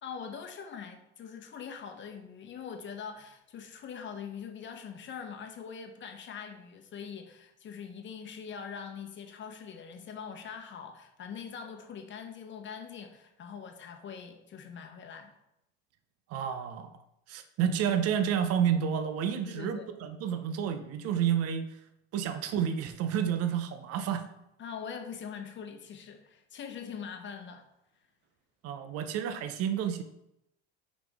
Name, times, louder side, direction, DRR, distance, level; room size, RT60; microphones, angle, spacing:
voice 1, 0.0-15.3 19.5-19.9 24.6-27.7, left 7 dB, 35° left, 5 dB, 1.0 m, -43 dB
voice 2, 16.3-16.9 17.3-21.8 22.1-24.3 28.6-30.0, right 8 dB, 50° right, 10 dB, 0.8 m, -30 dB
7.1 x 5.2 x 3.6 m, 0.83 s
supercardioid pair, 105°, 32 cm